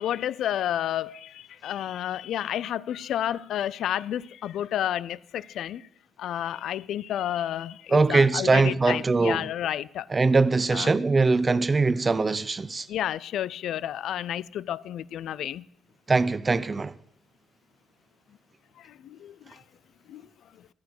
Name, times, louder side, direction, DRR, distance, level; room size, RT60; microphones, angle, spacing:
voice 1, 0.0-5.9 6.2-10.1 10.7-11.0 12.9-15.6 18.8-19.6 20.1-20.2, left 11 dB, 75° left, 0.4 m, -31 dB
voice 2, 7.9-9.5 10.1-12.9 16.1-16.9, right 3 dB, 30° right, 0.6 m, -22 dB
13.0 x 9.4 x 6.4 m
cardioid pair, 90°, 0 cm